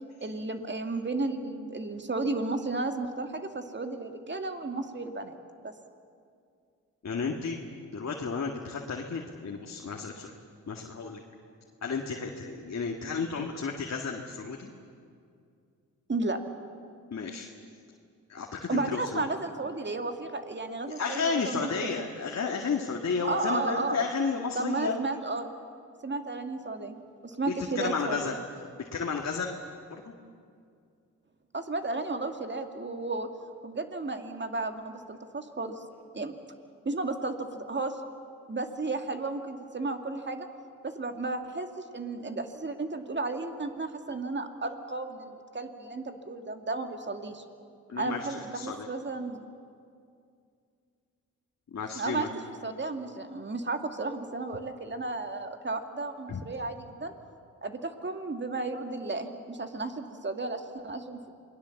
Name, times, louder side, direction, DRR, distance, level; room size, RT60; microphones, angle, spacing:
voice 1, 0.2-5.4 5.6-5.7 16.1-16.4 18.7-21.9 23.2-24.0 24.6-25.5 26.0-27.0 27.2-28.3 31.5-33.3 33.6-35.8 36.1-36.3 36.9-38.0 38.5-40.5 40.8-47.4 48.0-49.4 51.9-52.3 52.6-57.1 57.6-61.3, right 3 dB, 30° right, 6 dB, 2.3 m, -33 dB
voice 2, 7.0-7.6 7.9-10.3 10.7-11.2 11.8-14.7 17.1-17.5 18.3-19.3 21.0-25.0 27.8-28.4 28.8-29.6 29.9-30.1 47.9-48.3 48.5-48.9 51.7-52.3 56.3-56.4, left 5 dB, 50° left, 1 dB, 2.1 m, -32 dB
28.0 x 19.5 x 7.3 m, 2.4 s
supercardioid pair, 50°, 35 cm